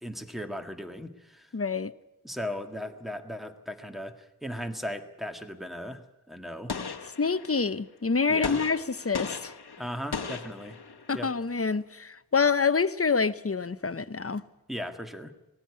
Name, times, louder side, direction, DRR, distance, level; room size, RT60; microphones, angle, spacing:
voice 1, 0.0-1.5 2.2-6.7 8.3-8.6 9.8-10.8 11.1-11.3 14.7-15.3, equal, ahead, 1.8 m, -37 dB
voice 2, 1.5-1.9 7.2-9.5 11.1-14.4, left 5 dB, 35° left, 0.8 m, -27 dB
Gunshot gunfire, 6.7-7.7 8.4-11.2, left 5 dB, 80° left, 1.3 m, -37 dB
20.0 x 16.0 x 9.8 m
wide cardioid pair, 60°, 38 cm